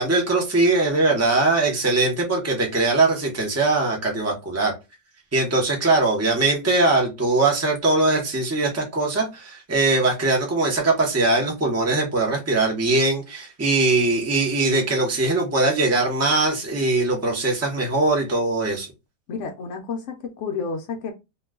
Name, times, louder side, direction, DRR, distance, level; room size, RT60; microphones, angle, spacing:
voice 1, 0.0-4.7 5.3-18.9, right 2 dB, 20° right, 0.3 m, -21 dB
voice 2, 19.3-21.1, left 5 dB, 75° left, 0.7 m, -30 dB
2.9 x 2.2 x 3.5 m
omnidirectional pair, 1.8 m